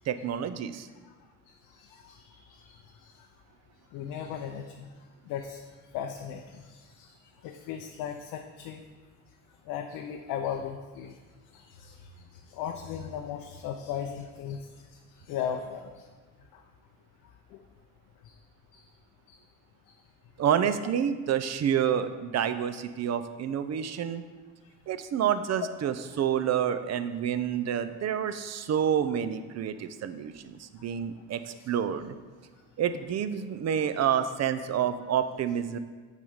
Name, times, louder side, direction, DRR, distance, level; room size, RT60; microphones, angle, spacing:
voice 1, 0.1-0.9 20.4-24.2 24.9-32.1 32.8-35.8, right 9 dB, 50° right, 11 dB, 0.6 m, -28 dB
voice 2, 1.5-3.3 3.9-4.9 5.3-5.6 5.9-7.2 7.4-8.8 9.7-11.2 11.5-16.1 16.5-16.6 17.5-17.6 18.2-18.3 18.7-18.9 19.3-19.4 19.9-20.0 26.1-26.2 31.6-31.7, left 8 dB, 80° left, 4 dB, 0.6 m, -38 dB
7.3 x 4.1 x 5.1 m, 1.4 s
supercardioid pair, 70°, 35 cm